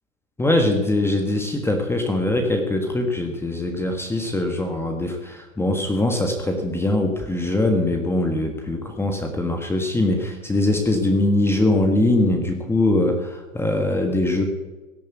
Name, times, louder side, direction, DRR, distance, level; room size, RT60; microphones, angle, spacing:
voice 1, 0.4-14.4, left 2 dB, 5° left, 4 dB, 1.5 m, -22 dB
17.0 x 9.0 x 8.2 m, 1.2 s
hypercardioid pair, 120°, 39 cm